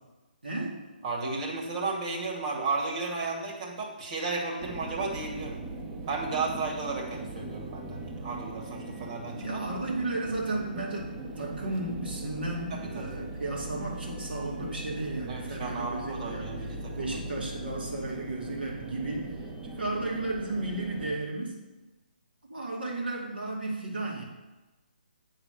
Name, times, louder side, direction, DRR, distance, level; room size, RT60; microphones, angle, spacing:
voice 1, 0.4-0.8 9.3-16.7 16.9-19.5 19.8-21.6 22.5-24.2, right 2 dB, 85° right, -3 dB, 2.3 m, -34 dB
voice 2, 1.0-5.6 6.1-9.7 12.7-13.1 15.3-17.2, right 3 dB, 45° right, -2 dB, 2.1 m, -34 dB
sound 1, 4.6-21.2, right 2 dB, 15° right, 0.6 m, -40 dB
8.1 x 4.0 x 6.5 m, 1.1 s
figure-of-eight pair, 145°, 5 cm